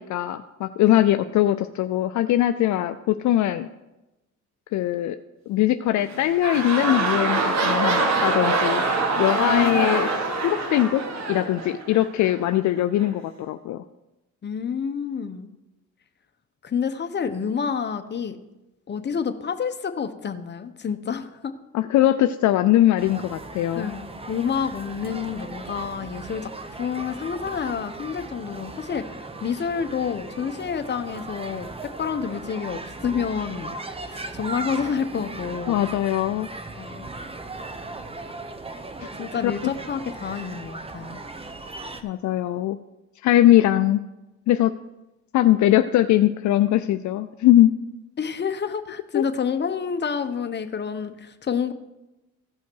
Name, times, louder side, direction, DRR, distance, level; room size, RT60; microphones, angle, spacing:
voice 1, 0.0-3.7 4.7-5.2 5.5-8.8 9.2-11.0 11.3-13.8 21.7-23.9 35.7-36.5 39.0-39.1 39.4-39.5 42.0-42.8 43.2-44.0 44.5-44.7 45.3-47.7 49.1-49.2, left 13 dB, 70° left, 10 dB, 0.5 m, -21 dB
sound 1, 6.0-12.3 13.0-13.1, right 3 dB, 65° right, 1.9 m, -24 dB
voice 2, 9.4-10.1 14.4-15.5 16.6-18.4 18.9-21.5 23.7-26.5 26.8-29.0 29.4-35.9 36.7-37.1 39.2-41.2 48.2-51.7, left 6 dB, 35° left, 8 dB, 0.9 m, -29 dB
sound 2, 23.0-42.0, right 2 dB, 20° right, 0.9 m, -37 dB
15.5 x 5.6 x 4.6 m, 0.98 s
cardioid pair, 90°, 30 cm